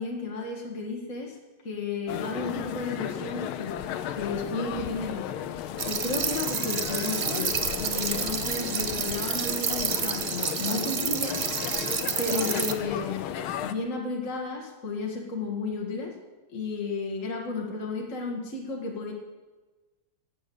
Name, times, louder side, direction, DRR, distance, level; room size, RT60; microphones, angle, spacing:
voice 1, 0.0-1.4 1.6-3.7 4.1-5.3 5.8-11.4 12.2-13.3 13.6-16.1 16.5-19.1, left 3 dB, 35° left, -1 dB, 2.0 m, -33 dB
sound 1, 2.1-13.7, left 10 dB, 75° left, 1.6 m, -35 dB
sound 2, 5.8-12.7, right 6 dB, 55° right, 0.6 m, -30 dB
17.0 x 9.2 x 7.1 m, 1.2 s
omnidirectional pair, 2.4 m